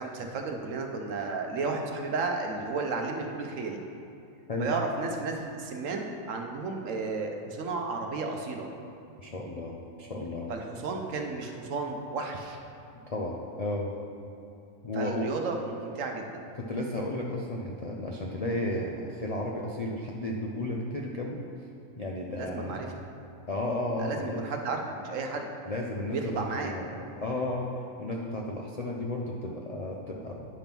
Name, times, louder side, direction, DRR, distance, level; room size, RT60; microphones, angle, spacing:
voice 1, 0.0-3.8 4.6-8.7 10.5-12.6 14.9-16.4 22.4-22.9 24.0-25.5 26.1-26.7, right 3 dB, 65° right, 3 dB, 1.1 m, -33 dB
voice 2, 9.2-10.5 13.1-13.9 14.8-15.3 16.6-21.4 22.0-22.9 23.5-24.4 25.7-30.4, left 1 dB, 70° left, -1 dB, 0.3 m, -33 dB
9.8 x 3.5 x 5.9 m, 2.7 s
omnidirectional pair, 1.5 m